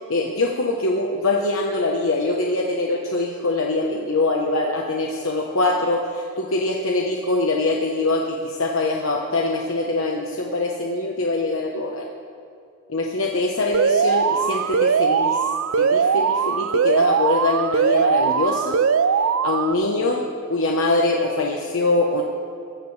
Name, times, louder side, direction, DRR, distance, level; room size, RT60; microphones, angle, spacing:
voice 1, 0.1-12.1 12.9-15.5 15.8-18.8 19.2-20.2 20.5-22.2, left 2 dB, 75° left, 0 dB, 1.1 m, -23 dB
Alarm, 13.7-19.7, right 6 dB, 80° right, 0.5 m, -20 dB
21.5 x 15.5 x 3.4 m, 2.4 s
head